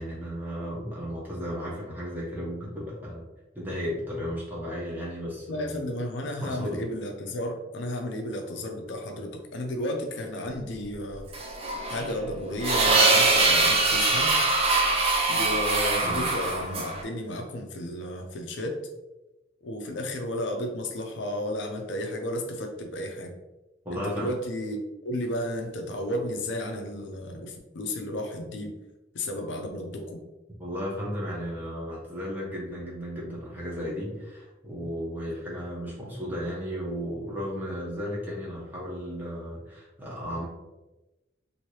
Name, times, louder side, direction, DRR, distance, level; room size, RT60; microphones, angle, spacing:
voice 1, 0.0-3.2 3.5-5.8 6.4-6.8 16.0-16.3 23.8-24.3 30.6-40.5, equal, 10° right, -6 dB, 1.0 m, -34 dB
voice 2, 5.5-11.3 11.8-14.3 15.3-18.8 19.6-23.3 23.9-28.7 29.1-30.2, left 1 dB, 70° left, 3 dB, 0.5 m, -33 dB
sound 1, 11.3-17.0, right 3 dB, 30° right, 0.5 m, -23 dB
2.9 x 2.7 x 3.1 m, 1.0 s
head